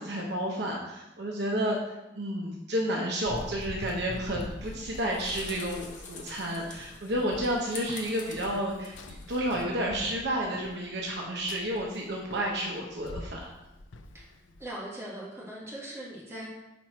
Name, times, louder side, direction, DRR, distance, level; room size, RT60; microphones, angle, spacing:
voice 1, 0.0-13.5, equal, 65° right, -1 dB, 0.8 m, -31 dB
Run, 3.3-14.6, left 2 dB, 85° left, 0.5 m, -45 dB
sound 1, 4.6-9.6, left 4 dB, 40° left, 0.9 m, -47 dB
voice 2, 14.6-16.5, right 1 dB, 15° right, -5 dB, 1.8 m, -40 dB
6.0 x 4.4 x 4.4 m, 0.96 s
head